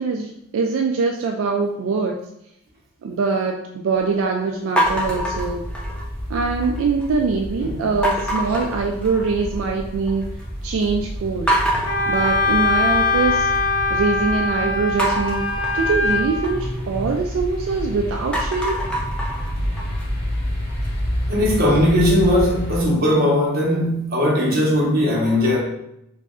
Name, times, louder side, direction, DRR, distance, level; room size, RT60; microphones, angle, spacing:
voice 1, 0.0-2.2 3.0-5.7 6.3-10.2 10.6-11.6 12.1-13.5 13.9-15.4 15.7-18.8, right 4 dB, 80° right, 2 dB, 0.3 m, -23 dB
sound 1, 4.8-22.8, equal, 30° left, 1.5 m, -29 dB
sound 2, 4.8-6.2 6.6-7.2 8.0-9.6 9.9-10.5 10.8-10.9 11.5-13.6 15.0-17.8 18.2-21.1, equal, 5° left, 0.4 m, -26 dB
Wind instrument woodwind instrument, 11.9-16.5, left 3 dB, 60° left, 0.7 m, -21 dB
voice 2, 21.3-25.6, left 1 dB, 50° right, -3 dB, 1.0 m, -18 dB
3.1 x 2.5 x 3.6 m, 0.79 s
head